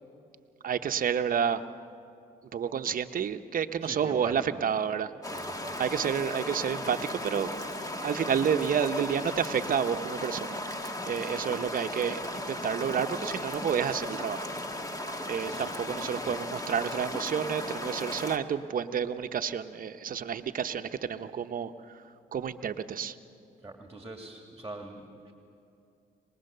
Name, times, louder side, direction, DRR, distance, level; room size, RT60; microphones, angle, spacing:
voice 1, 0.6-1.6 2.5-5.1 5.8-7.5 8.0-14.5 15.3-21.7 22.3-23.1, right 7 dB, 50° right, 9 dB, 0.9 m, -30 dB
voice 2, 3.8-4.6 5.3-5.9 15.5-15.7 16.2-16.4 23.6-25.3, right 2 dB, 15° right, 3 dB, 2.1 m, -43 dB
sound 1, 5.2-18.4, left 1 dB, 20° left, 1.6 m, -36 dB
23.5 x 20.0 x 6.8 m, 2.6 s
supercardioid pair, 70°, 18 cm